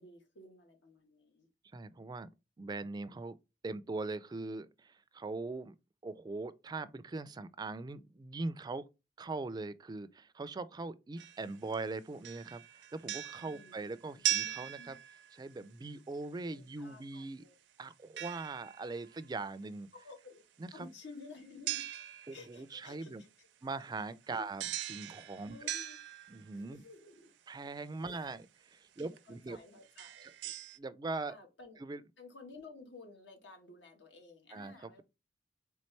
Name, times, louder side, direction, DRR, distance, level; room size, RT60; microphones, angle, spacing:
voice 1, 0.0-1.5 13.4-15.0 16.5-17.6 19.9-20.5 20.7-21.9 22.3-23.5 24.3-24.5 25.5-26.0 26.5-27.3 28.0-28.2 29.0-30.3 31.3-31.8 32.2-35.0, left 3 dB, 80° left, 1.3 m, -54 dB
voice 2, 1.7-2.3 2.6-3.4 3.6-5.8 6.0-8.9 9.2-15.0 15.4-17.4 17.8-19.9 20.6-20.9 22.3-23.2 23.6-24.6 24.9-25.6 26.3-26.8 27.5-29.6 30.2-30.3 30.8-31.4 31.8-32.0 34.5-35.0, right 3 dB, 25° right, 0.3 m, -41 dB
sound 1, 11.2-11.8 12.2-15.5 18.2-19.0 21.7-22.6 24.6-26.7 28.2-28.3 29.0-29.2 29.8-30.8, right 12 dB, 80° right, 0.5 m, -39 dB
4.2 x 3.4 x 3.2 m
head